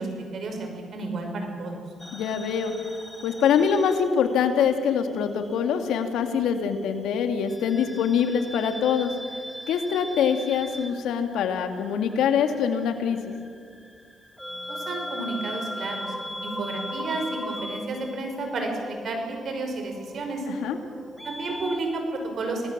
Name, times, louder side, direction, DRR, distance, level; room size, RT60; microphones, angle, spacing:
voice 1, 0.0-1.8 14.7-16.1 16.4-20.5 21.2-22.7, right 2 dB, 60° right, 4 dB, 5.7 m, -31 dB
sound 1, 2.0-4.8 5.1-6.3 7.5-21.8, left 1 dB, ahead, 1.4 m, -39 dB
voice 2, 2.1-2.7 3.2-9.1 9.7-13.3 20.5-20.8, left 7 dB, 85° left, 6 dB, 2.3 m, -24 dB
27.5 x 18.5 x 7.4 m, 2.1 s
cardioid pair, 90°, 0 cm